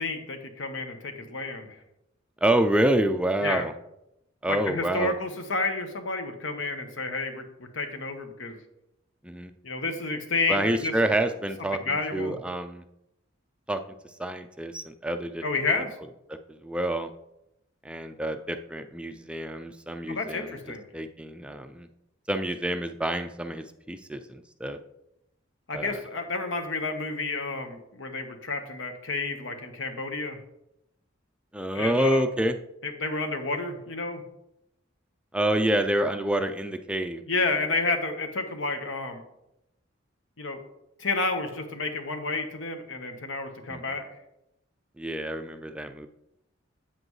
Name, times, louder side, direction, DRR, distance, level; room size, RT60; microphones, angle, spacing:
voice 1, 0.0-1.8 3.4-3.6 4.5-8.6 9.6-10.9 11.8-12.4 15.4-15.9 20.1-20.8 25.7-30.4 31.7-32.2 32.8-34.2 37.3-39.2 40.4-40.6 41.0-44.0, left 3 dB, 75° left, 6 dB, 1.1 m, -30 dB
voice 2, 2.4-3.7 4.4-5.1 9.2-9.5 10.5-12.8 13.7-13.8 14.2-15.4 16.3-17.1 17.8-21.9 22.3-24.8 25.7-26.0 31.5-32.6 35.3-37.2 43.7-43.8 45.0-46.1, right 1 dB, 5° right, 8 dB, 0.3 m, -28 dB
8.5 x 7.6 x 3.1 m, 0.84 s
head